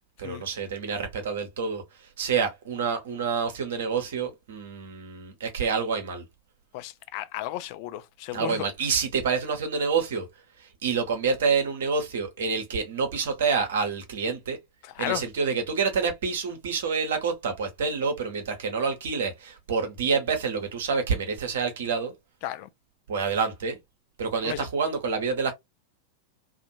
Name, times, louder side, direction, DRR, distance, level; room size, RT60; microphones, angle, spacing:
voice 1, 0.2-1.8 2.2-6.2 8.3-10.3 10.6-14.6 15.0-22.1 23.1-23.8 24.2-25.5, right 5 dB, 60° right, 0.8 m, -27 dB
voice 2, 6.7-8.7 15.0-15.2 22.4-22.7 24.4-24.7, left 13 dB, 45° left, 0.3 m, -33 dB
2.5 x 2.1 x 2.7 m
figure-of-eight pair, 90°, 0 cm